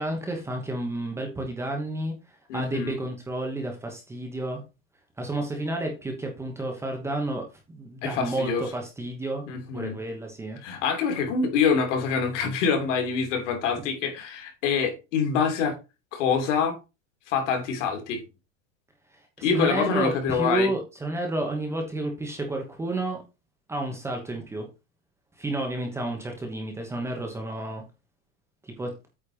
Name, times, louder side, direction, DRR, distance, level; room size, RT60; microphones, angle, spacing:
voice 1, 0.0-4.6 5.2-9.4 9.7-10.6 19.4-23.2 23.7-24.7 25.4-27.8 28.6-28.9, right 2 dB, 5° right, 1.1 m, -31 dB
voice 2, 2.5-2.9 8.0-8.6 9.5-10.0 10.6-15.7 16.1-16.8 17.3-18.2 19.4-20.7, left 6 dB, 65° left, 3.1 m, -25 dB
8.7 x 4.2 x 5.0 m
supercardioid pair, 175°, 39 cm